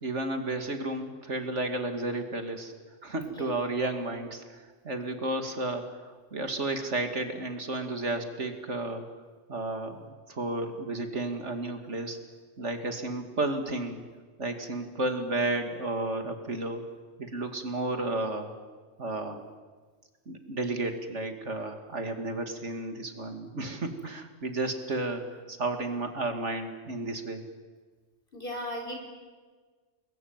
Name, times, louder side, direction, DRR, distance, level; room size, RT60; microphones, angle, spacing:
voice 1, 0.0-2.7 3.0-9.0 9.5-12.2 12.6-14.0 14.4-16.8 17.2-18.5 19.0-19.4 20.3-27.4, right 2 dB, 65° right, 6 dB, 2.9 m, -32 dB
voice 2, 28.3-28.9, equal, 45° left, 2 dB, 4.7 m, -36 dB
29.0 x 21.5 x 9.0 m, 1.5 s
omnidirectional pair, 1.3 m